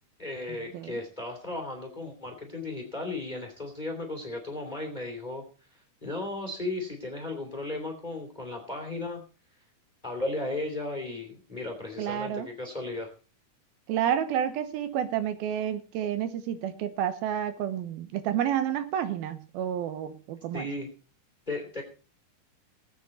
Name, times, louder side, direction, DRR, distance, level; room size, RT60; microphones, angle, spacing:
voice 1, 0.2-5.4 5.7-9.2 10.0-13.1 20.5-20.9 21.5-21.8, left 2 dB, 15° left, 3 dB, 2.2 m, -35 dB
voice 2, 12.0-12.5 13.9-20.7, right 10 dB, 80° right, 11 dB, 2.8 m, -30 dB
19.5 x 8.2 x 4.2 m, 0.35 s
omnidirectional pair, 4.3 m